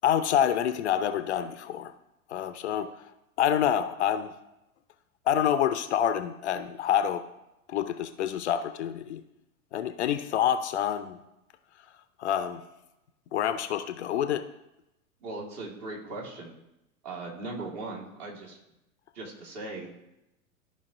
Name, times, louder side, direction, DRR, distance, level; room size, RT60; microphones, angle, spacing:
voice 1, 0.0-1.9 2.3-2.9 3.4-4.3 5.3-7.2 7.7-9.2 9.7-11.2 12.2-12.6 13.3-14.4, left 9 dB, 55° left, 12 dB, 0.5 m, -27 dB
voice 2, 15.2-16.5 17.0-18.6 19.1-19.9, right 2 dB, 40° right, -1 dB, 2.0 m, -38 dB
13.0 x 5.0 x 2.6 m, 0.90 s
figure-of-eight pair, 95°, 43 cm